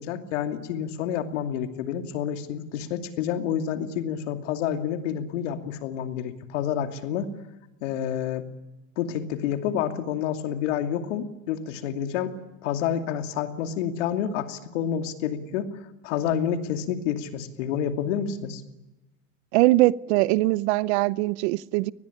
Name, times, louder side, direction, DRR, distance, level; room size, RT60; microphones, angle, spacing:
voice 1, 0.0-7.3 7.8-8.4 9.0-12.3 12.6-18.6, left 9 dB, 70° left, 2.7 m, -29 dB
voice 2, 19.5-21.9, right 19 dB, 60° right, 0.8 m, -21 dB
24.0 x 20.0 x 10.0 m
supercardioid pair, 130°, 38 cm